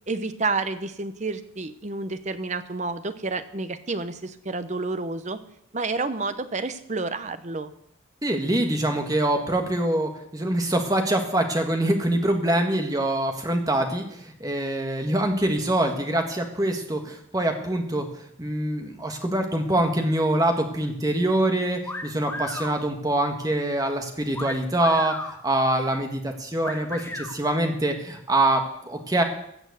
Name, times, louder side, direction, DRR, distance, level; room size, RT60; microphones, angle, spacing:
voice 1, 0.1-5.4 5.7-7.7, right 3 dB, 35° right, 11 dB, 0.8 m, -30 dB
voice 2, 8.2-18.0 18.4-25.2 25.4-29.2, right 1 dB, 20° right, 4 dB, 1.6 m, -24 dB
sound 1, 21.8-22.8 24.3-25.4 26.6-27.3, left 2 dB, 10° left, 1.3 m, -34 dB
15.5 x 6.2 x 8.1 m, 0.75 s
head